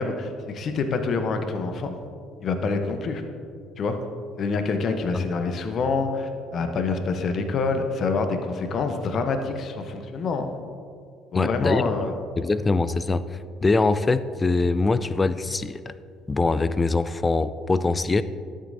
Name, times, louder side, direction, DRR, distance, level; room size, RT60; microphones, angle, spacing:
voice 1, 0.0-1.9 2.4-3.2 3.8-4.0 4.4-10.5 11.3-12.2, left 4 dB, 50° left, 6 dB, 0.8 m, -26 dB
voice 2, 11.3-11.9 12.4-15.9 16.3-18.2, left 3 dB, 25° left, 14 dB, 0.4 m, -23 dB
12.5 x 7.5 x 2.7 m, 2.3 s
hypercardioid pair, 60°, 0 cm